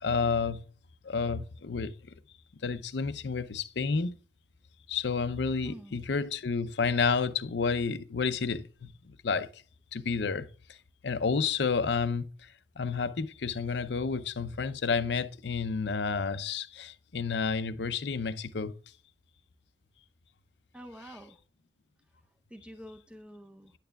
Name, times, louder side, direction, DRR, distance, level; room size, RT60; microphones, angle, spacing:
voice 1, 0.0-0.6 1.0-1.9 2.6-4.1 4.9-8.9 9.2-9.5 9.9-10.5 11.0-12.3 12.8-18.7, left 5 dB, 65° left, 0.6 m, -30 dB
voice 2, 5.6-6.0 20.7-21.4 22.5-23.7, equal, 5° right, 0.7 m, -47 dB
9.7 x 8.9 x 2.3 m
head